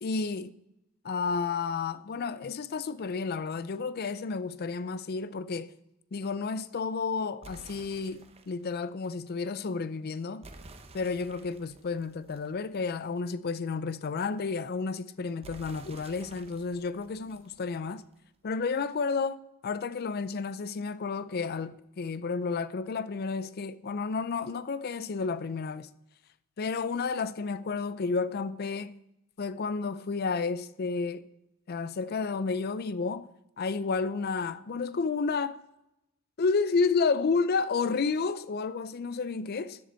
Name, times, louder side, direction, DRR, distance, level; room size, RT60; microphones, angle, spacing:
voice 1, 0.0-0.5 1.0-5.7 6.1-10.5 10.9-18.0 18.4-25.9 26.6-28.9 29.4-31.3 31.7-33.3 33.6-35.6 36.4-39.8, left 4 dB, 45° left, 0.4 m, -31 dB
sound 1, 7.4-8.7 10.4-13.1 15.4-18.1, right 2 dB, 30° right, 0.9 m, -52 dB
13.5 x 7.7 x 4.4 m
head